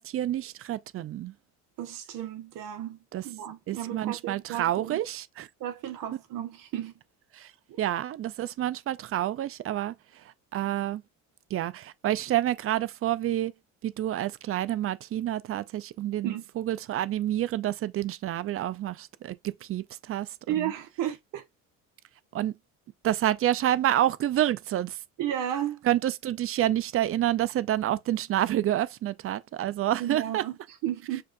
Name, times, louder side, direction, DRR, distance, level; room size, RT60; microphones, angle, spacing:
voice 1, 0.0-1.3 3.1-3.2 3.7-5.5 7.4-7.5 7.8-9.9 10.5-11.0 11.5-13.5 13.8-20.7 22.3-22.5 23.0-25.0 25.8-30.4, right 12 dB, 40° right, 0.4 m, -28 dB
voice 2, 1.8-5.0 5.6-6.9 7.7-7.8 16.2-16.4 20.5-21.4 25.2-25.8 30.0-31.2, right 11 dB, 70° right, 1.4 m, -33 dB
6.6 x 2.5 x 2.5 m
cardioid pair, 105°, 34 cm